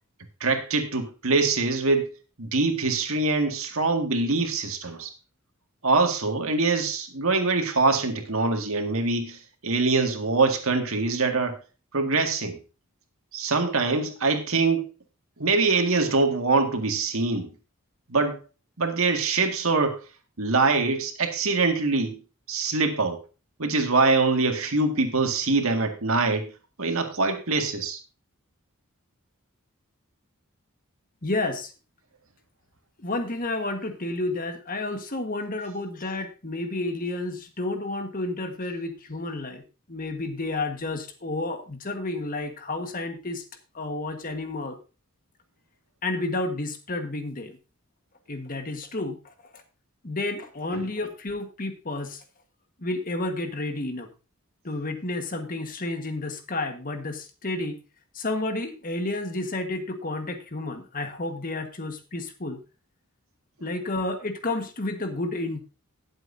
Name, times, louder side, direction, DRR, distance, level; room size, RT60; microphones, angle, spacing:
voice 1, 0.4-2.1 2.4-5.1 5.8-11.6 11.9-12.6 13.3-14.8 15.4-17.5 18.1-18.4 18.8-20.0 20.4-22.1 22.5-23.2 23.6-26.5 26.8-28.0 50.7-50.8, right 3 dB, 70° right, 2.0 m, -24 dB
voice 2, 31.2-31.7 33.0-39.6 39.9-43.4 43.7-44.8 46.0-47.6 48.3-49.3 50.0-52.2 52.8-54.1 54.6-57.7 58.1-62.6 63.6-65.6, left 2 dB, 40° left, 1.4 m, -31 dB
18.0 x 7.8 x 2.7 m
head